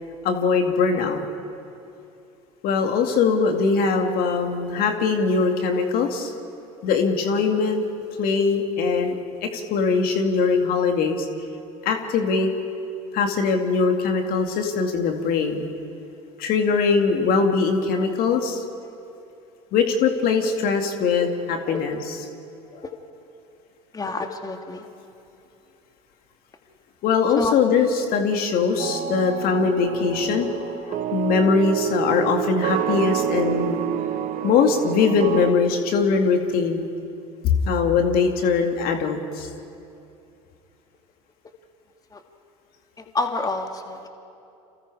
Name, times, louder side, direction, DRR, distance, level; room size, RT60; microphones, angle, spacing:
voice 1, 0.2-1.2 2.6-6.3 6.8-7.8 8.2-9.1 9.4-11.3 11.8-12.5 13.1-15.7 16.4-18.6 19.7-22.0 22.7-22.8 27.0-33.8 34.4-36.9 37.4-39.5, left 5 dB, 55° left, 4 dB, 2.4 m, -21 dB
voice 2, 23.9-24.8 27.4-27.5 42.1-42.2 43.0-44.1, left 3 dB, 20° left, 4 dB, 2.1 m, -28 dB
sound 1, 28.8-35.5, right 11 dB, 45° right, 1.3 m, -28 dB
29.0 x 27.5 x 4.9 m, 2.7 s
hypercardioid pair, 70°, 18 cm